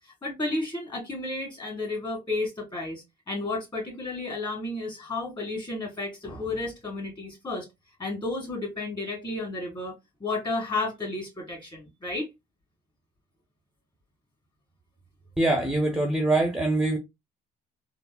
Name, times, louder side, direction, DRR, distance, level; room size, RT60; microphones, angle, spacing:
voice 1, 0.2-7.6 8.0-9.9 10.2-12.3, left 2 dB, 25° left, 2.0 m, -32 dB
voice 2, 15.4-17.0, right 2 dB, 5° right, 0.5 m, -23 dB
3.5 x 2.0 x 2.3 m
cardioid pair, 110°, 17 cm